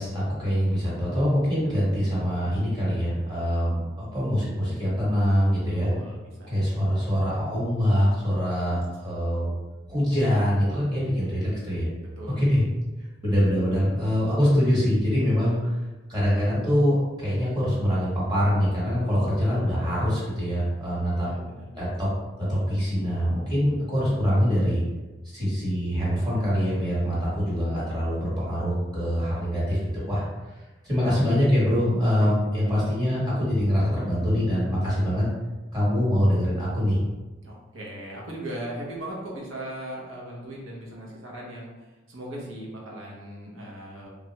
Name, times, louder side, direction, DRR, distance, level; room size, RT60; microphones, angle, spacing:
voice 1, 0.0-5.9 6.5-8.8 9.0-9.5 9.9-11.9 12.4-12.6 13.2-15.7 16.1-21.3 21.8-22.1 22.4-24.8 25.2-30.2 30.8-35.3 35.7-37.0, equal, 20° right, -8 dB, 1.3 m, -24 dB
voice 2, 5.7-6.6 8.6-8.8 12.2-12.4 21.1-21.7 32.2-32.3 37.4-44.1, right 1 dB, 75° right, -3 dB, 0.9 m, -38 dB
3.1 x 2.4 x 2.8 m, 1.1 s
head